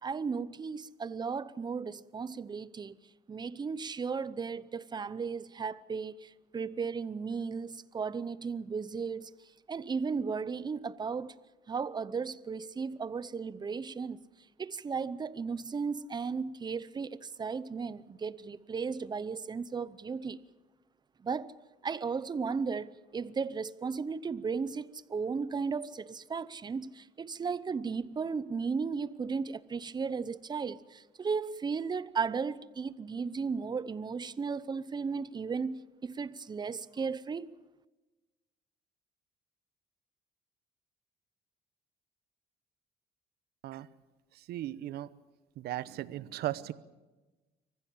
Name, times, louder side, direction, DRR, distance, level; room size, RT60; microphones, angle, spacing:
voice 1, 0.0-3.0 3.3-9.3 9.7-11.3 11.7-14.2 14.6-20.4 21.2-21.5 21.8-37.5, right 5 dB, 25° right, 0.8 m, -35 dB
voice 2, 44.3-45.1 45.6-46.7, right 14 dB, 70° right, 0.9 m, -37 dB
24.0 x 15.5 x 8.6 m
cardioid pair, 110°, 17 cm